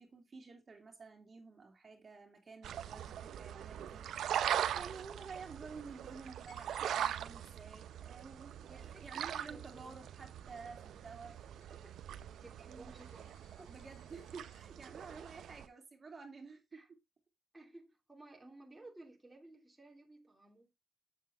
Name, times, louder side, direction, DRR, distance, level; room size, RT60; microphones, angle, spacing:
voice 1, 0.0-4.3 4.7-11.4 12.7-12.9 13.6-17.0, right 4 dB, 35° right, 2.8 m, -51 dB
sound 1, 2.6-15.7, right 10 dB, 70° right, 0.8 m, -41 dB
Coin (dropping), 6.5-14.6, left 5 dB, 70° left, 5.1 m, -69 dB
voice 2, 8.7-9.9 11.2-11.4 11.8-13.7 14.9-15.3 16.7-16.9 17.5-20.7, right 2 dB, 10° right, 2.7 m, -57 dB
8.1 x 7.4 x 3.5 m
cardioid pair, 90°, 0 cm